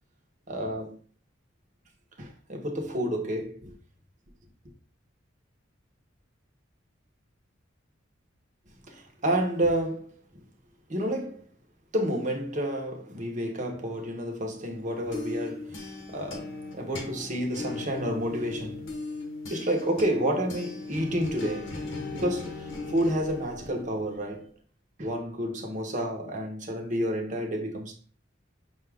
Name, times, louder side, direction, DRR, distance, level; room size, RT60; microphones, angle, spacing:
voice 1, 0.5-1.0 2.2-3.7 8.9-10.2 10.9-11.4 11.9-18.9 19.5-21.8 22.1-24.5 25.0-27.9, right 1 dB, 40° right, 0.8 m, -30 dB
sound 1, 14.8-24.4, left 3 dB, 70° left, 0.9 m, -38 dB
5.6 x 2.3 x 3.3 m
head